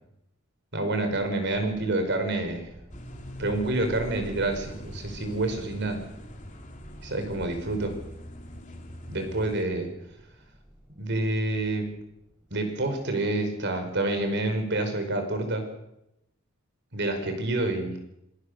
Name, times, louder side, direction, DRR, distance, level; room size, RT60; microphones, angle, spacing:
voice 1, 0.7-2.7 3.4-6.0 7.0-8.0 9.1-9.9 11.0-11.9 12.5-15.7 16.9-18.0, right 2 dB, 60° right, 6 dB, 5.1 m, -28 dB
sound 1, 0.9-13.9, equal, 10° right, 6.6 m, -49 dB
sound 2, 2.9-9.6, left 1 dB, 40° left, 3.3 m, -44 dB
26.5 x 18.5 x 6.8 m, 0.85 s
head